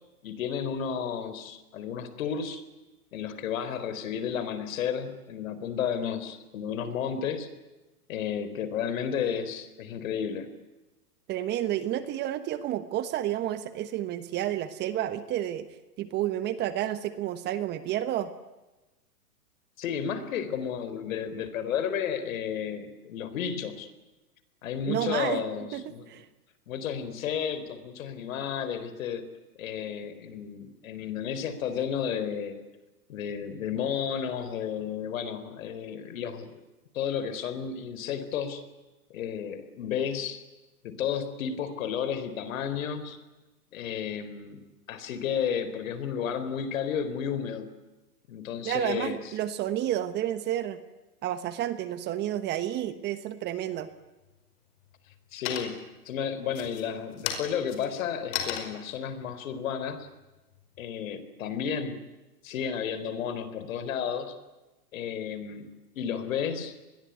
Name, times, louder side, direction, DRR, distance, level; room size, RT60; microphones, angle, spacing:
voice 1, 0.2-2.6 3.1-7.5 8.1-10.5 19.8-23.9 24.6-26.1 26.7-29.3 29.6-32.6 33.1-36.6 36.9-38.7 39.1-40.4 40.8-43.2 43.7-44.6 44.9-47.7 48.3-49.2 55.3-60.1 60.8-62.0 62.4-64.4 64.9-65.6 66.0-66.7, left 8 dB, 60° left, 12 dB, 4.2 m, -32 dB
voice 2, 11.3-15.7 16.0-18.3 24.9-25.4 25.7-26.2 48.6-50.8 51.2-53.9, right 12 dB, 20° right, 12 dB, 1.2 m, -30 dB
sound 1, 53.8-54.4 54.8-55.2 55.4-56.0 56.5-60.9, left 9 dB, 40° left, 5.1 m, -36 dB
27.0 x 21.5 x 9.5 m, 1.1 s
hypercardioid pair, 140°, 46 cm